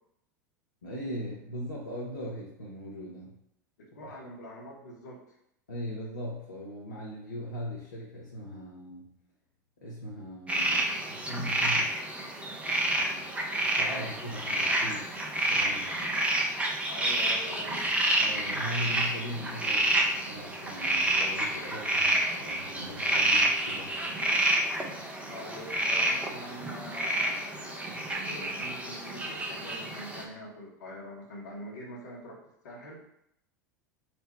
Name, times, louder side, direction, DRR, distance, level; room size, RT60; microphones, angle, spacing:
voice 1, 0.8-3.4 4.0-4.1 5.7-9.1 9.8-12.0 12.9-15.1 15.4-16.0 18.2-23.9, equal, 90° left, -6 dB, 0.8 m, -39 dB
voice 2, 3.8-5.3 16.9-17.9 25.3-32.4 32.6-33.0, equal, 70° left, -2 dB, 1.2 m, -44 dB
sound 1, 10.5-30.2, right 1 dB, 10° right, 0.7 m, -29 dB
4.3 x 2.2 x 4.3 m, 0.77 s
figure-of-eight pair, 85°, 10 cm